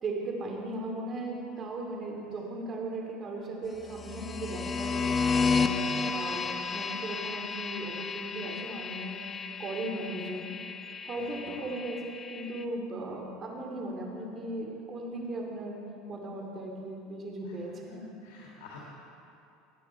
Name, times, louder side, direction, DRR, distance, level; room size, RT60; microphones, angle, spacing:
voice 1, 0.0-9.2 9.6-10.5 11.0-15.8 16.1-18.0, right 2 dB, 35° right, 0 dB, 2.6 m, -37 dB
sound 1, 3.8-12.6, left 4 dB, 25° left, 0.7 m, -32 dB
voice 2, 6.2-6.5 11.1-11.7 17.4-17.6 17.9-18.9, left 4 dB, 80° left, -3 dB, 2.0 m, -50 dB
19.0 x 8.4 x 4.6 m, 2.6 s
supercardioid pair, 120°, 0 cm